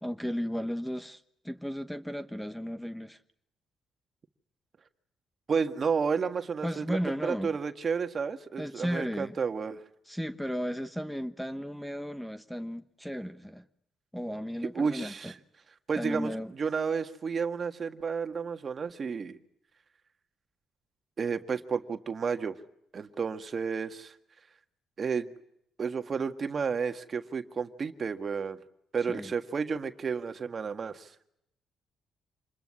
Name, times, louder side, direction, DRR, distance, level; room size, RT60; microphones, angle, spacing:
voice 1, 0.0-3.2 6.6-7.6 8.6-9.4 10.1-13.6 14.1-15.3 16.0-16.5 29.1-29.3, equal, ahead, 1.2 m, -35 dB
voice 2, 5.5-9.8 14.7-15.3 15.9-19.4 21.2-22.5 22.9-24.1 25.0-25.3 25.8-28.6 28.9-31.1, right 5 dB, 45° right, 1.7 m, -31 dB
26.5 x 21.0 x 9.9 m
cardioid pair, 90°, 0 cm